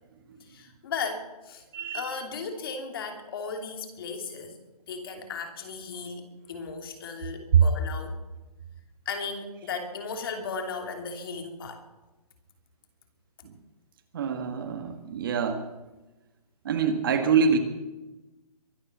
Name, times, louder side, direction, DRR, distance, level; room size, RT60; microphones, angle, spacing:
voice 1, 0.4-1.6 1.9-4.6 4.8-8.2 9.0-11.8, left 5 dB, 35° left, 5 dB, 2.9 m, -36 dB
voice 2, 1.7-2.0 7.5-7.6 14.1-15.6 16.6-17.6, right 7 dB, 35° right, 7 dB, 1.6 m, -24 dB
23.5 x 9.9 x 6.1 m, 1.1 s
hypercardioid pair, 170°, 20 cm